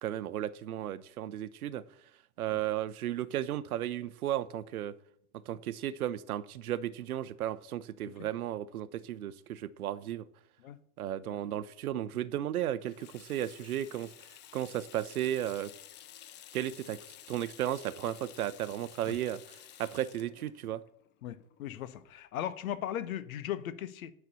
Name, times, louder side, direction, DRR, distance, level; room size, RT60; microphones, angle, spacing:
voice 1, 0.0-1.8 2.4-4.9 5.5-10.3 11.0-14.1 14.5-15.7 16.5-17.0 17.3-20.8, right 12 dB, 70° right, 0.7 m, -34 dB
Water tap faucet / Sink (filling or washing), 12.8-22.1, left 11 dB, 25° left, 0.5 m, -53 dB
voice 2, 21.2-24.1, left 11 dB, 65° left, 0.8 m, -37 dB
9.5 x 4.5 x 6.8 m
figure-of-eight pair, 85°, 45 cm